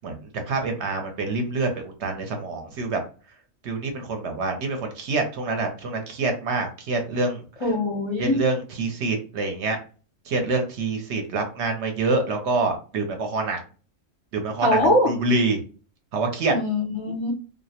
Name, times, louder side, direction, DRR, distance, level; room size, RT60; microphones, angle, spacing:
voice 1, 0.0-3.0 3.6-7.4 8.2-9.8 10.3-13.6 14.3-15.6 16.1-16.5, right 3 dB, 65° right, 4 dB, 0.8 m, -26 dB
voice 2, 7.6-8.4 14.6-15.1 16.5-17.3, left 1 dB, 35° left, -4 dB, 0.5 m, -22 dB
2.4 x 2.0 x 2.7 m, 0.37 s
omnidirectional pair, 1.4 m